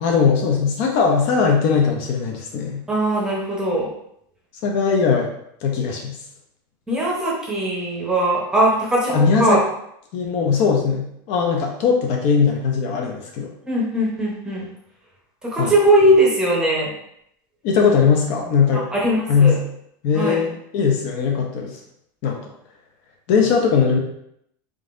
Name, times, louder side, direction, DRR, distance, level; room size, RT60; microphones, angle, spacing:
voice 1, 0.0-2.8 4.6-5.3 5.6-6.2 9.1-9.6 10.1-13.5 15.6-15.7 17.6-18.8 19.3-19.6 20.0-21.8 22.2-22.4 23.3-24.0, left 6 dB, 45° left, 1 dB, 0.5 m, -19 dB
voice 2, 2.9-3.9 6.9-9.6 13.7-14.7 15.4-16.9 18.7-19.6 20.1-20.4, right 1 dB, 5° right, -4 dB, 0.8 m, -20 dB
3.7 x 3.7 x 2.5 m, 0.75 s
supercardioid pair, 175°, 11 cm